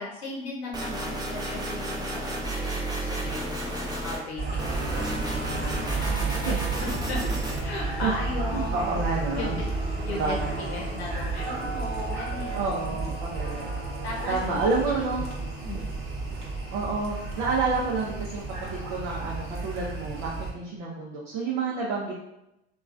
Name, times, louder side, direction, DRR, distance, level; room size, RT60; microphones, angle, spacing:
voice 1, 0.0-6.6 7.1-7.2 7.6-8.8 9.3-9.5 10.0-13.1 14.0-14.8 15.6-15.9, left 3 dB, 85° left, -2 dB, 0.8 m, -37 dB
sound 1, 0.7-4.2 4.6-7.6, right 2 dB, 15° right, 0.6 m, -31 dB
sound 2, 4.4-20.5, right 3 dB, 40° right, 0.9 m, -32 dB
voice 2, 8.5-9.6 10.1-10.6 12.5-13.7 14.3-15.3 16.7-18.4 18.7-22.1, right 4 dB, 65° right, -4 dB, 0.7 m, -29 dB
3.0 x 2.3 x 2.4 m, 0.89 s
hypercardioid pair, 65°, 31 cm